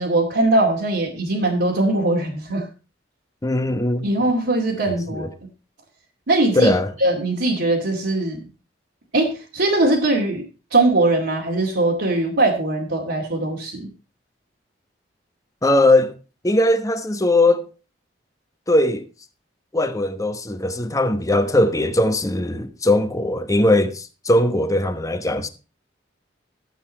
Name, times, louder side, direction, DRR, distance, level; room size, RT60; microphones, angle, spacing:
voice 1, 0.0-2.7 4.0-5.3 6.3-6.7 7.0-8.5 9.1-10.4 10.7-13.9, right 2 dB, 75° right, 2.3 m, -20 dB
voice 2, 3.4-4.1 5.1-5.3 6.5-6.9 15.6-16.2 16.4-17.7 18.7-19.1 19.7-25.5, left 1 dB, 20° left, 1.0 m, -19 dB
12.5 x 8.1 x 4.3 m
head